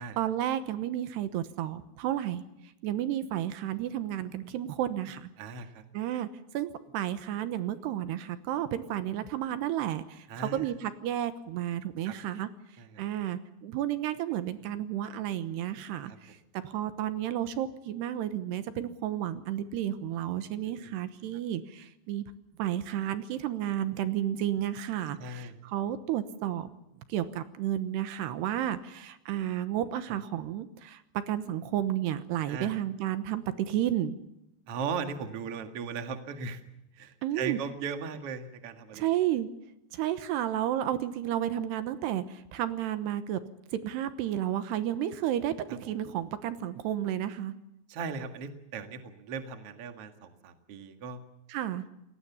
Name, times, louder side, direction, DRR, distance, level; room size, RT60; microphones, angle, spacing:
voice 1, 0.0-2.4 2.8-5.3 5.9-6.3 6.5-12.5 13.0-16.4 16.6-22.2 22.6-26.7 27.1-34.2 37.2-37.6 38.9-39.5 39.9-43.4 43.7-47.5 51.5-51.8, right 11 dB, 80° right, 11 dB, 3.1 m, -32 dB
voice 2, 5.4-5.8 10.3-10.7 12.0-12.1 12.8-13.0 16.1-16.2 20.7-20.9 25.2-25.6 32.4-32.7 34.7-36.6 36.9-39.0 45.7-45.8 47.9-51.2, right 5 dB, 45° right, 7 dB, 2.1 m, -38 dB
29.0 x 19.5 x 7.1 m, 0.87 s
omnidirectional pair, 4.9 m